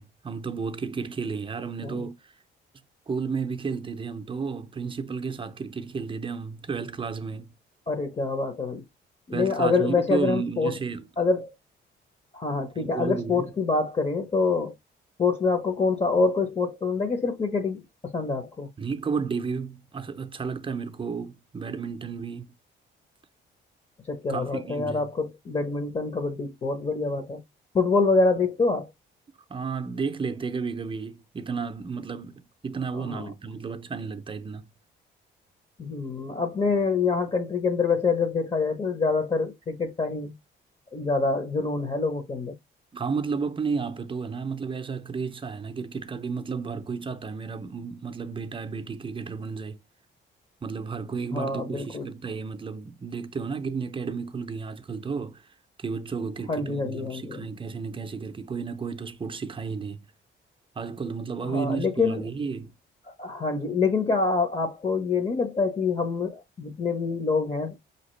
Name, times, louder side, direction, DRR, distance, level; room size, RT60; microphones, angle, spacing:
voice 1, 0.0-2.1 3.1-7.5 9.3-11.1 12.8-13.5 18.8-22.5 24.3-25.0 29.5-34.7 42.9-49.8 50.6-55.5 55.8-60.1 60.8-62.7, right 5 dB, 25° right, 0.6 m, -32 dB
voice 2, 7.9-8.8 9.3-10.8 11.2-11.5 12.3-14.7 15.2-18.7 24.1-27.4 27.7-28.9 32.9-33.3 35.8-40.3 40.9-42.5 51.3-52.1 56.5-57.5 61.4-62.3 63.1-67.7, left 4 dB, 30° left, 0.9 m, -26 dB
5.6 x 2.9 x 3.1 m
cardioid pair, 90°, 20 cm